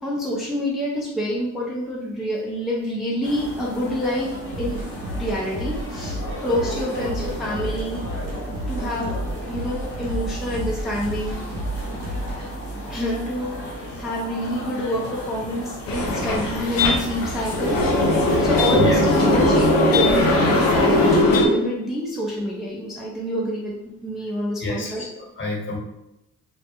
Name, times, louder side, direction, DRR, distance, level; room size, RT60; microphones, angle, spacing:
voice 1, 0.0-4.8 5.2-8.0 8.7-9.2 9.5-11.4 12.9-13.6 14.0-17.9 18.2-23.8 24.0-25.0, equal, ahead, -5 dB, 0.5 m, -27 dB
sound 1, 3.2-21.2, equal, 70° left, 1.2 m, -34 dB
sound 2, 4.5-12.4, right 1 dB, 85° right, 0.6 m, -32 dB
sound 3, 15.9-21.5, left 1 dB, 85° left, 0.5 m, -19 dB
voice 2, 24.6-25.8, left 1 dB, 35° left, -2 dB, 0.9 m, -27 dB
2.3 x 2.0 x 2.9 m, 0.88 s
supercardioid pair, 60°, 34 cm